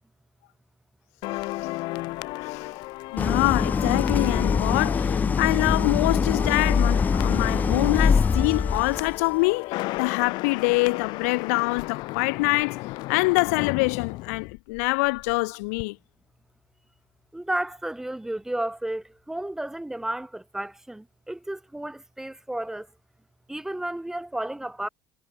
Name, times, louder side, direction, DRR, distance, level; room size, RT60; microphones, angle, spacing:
sound 1, 1.2-15.4 15.6-15.8, left 21 dB, 70° left, 1.1 m, -34 dB
voice 1, 2.4-2.7 3.1-16.0, left 27 dB, 90° left, 0.7 m, -25 dB
Idling, 3.2-9.2, left 5 dB, 20° left, 0.4 m, -23 dB
voice 2, 17.3-22.9 23.5-24.9, right 1 dB, 5° right, 1.3 m, -32 dB
supercardioid pair, 110°, 8 cm